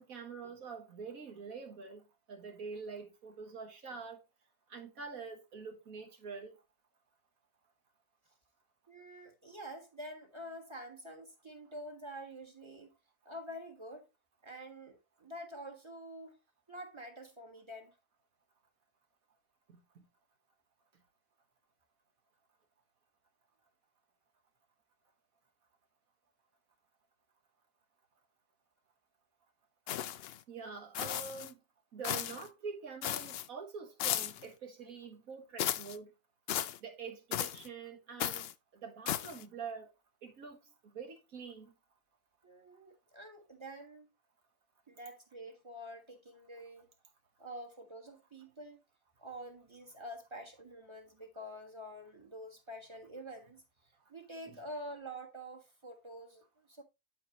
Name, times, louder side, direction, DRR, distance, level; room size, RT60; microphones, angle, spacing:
voice 1, 0.0-4.2 4.7-6.5 19.7-20.1 30.5-31.6 31.9-36.1 36.8-38.5 38.7-39.9 40.2-40.6 40.9-41.7 54.4-54.6, right 5 dB, 65° right, 1.9 m, -45 dB
voice 2, 8.9-12.9 13.2-14.1 14.4-16.4 16.7-17.9 42.4-44.1 44.9-46.9 47.4-48.8 49.2-53.6 54.1-56.8, equal, 20° right, 1.4 m, -47 dB
sound 1, 29.9-30.4 30.9-31.5 32.0-32.5 33.0-33.5 34.0-34.5 35.6-36.0 36.5-36.8 37.3-37.7 38.2-38.5 39.1-39.4, left 11 dB, 90° left, 0.5 m, -35 dB
11.5 x 4.6 x 2.9 m
omnidirectional pair, 1.6 m